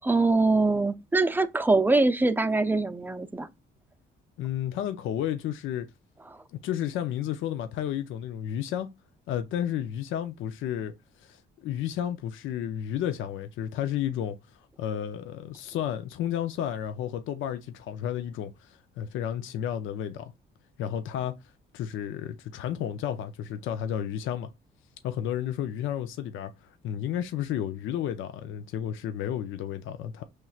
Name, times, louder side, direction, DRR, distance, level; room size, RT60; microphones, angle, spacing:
voice 1, 0.0-3.5, right 3 dB, 10° right, 0.5 m, -23 dB
voice 2, 4.4-5.9 6.5-8.9 9.3-14.4 14.8-20.3 20.8-21.4 21.7-24.5 25.0-30.2, left 10 dB, 80° left, 0.5 m, -32 dB
5.5 x 3.1 x 2.3 m
cardioid pair, 90°, 20 cm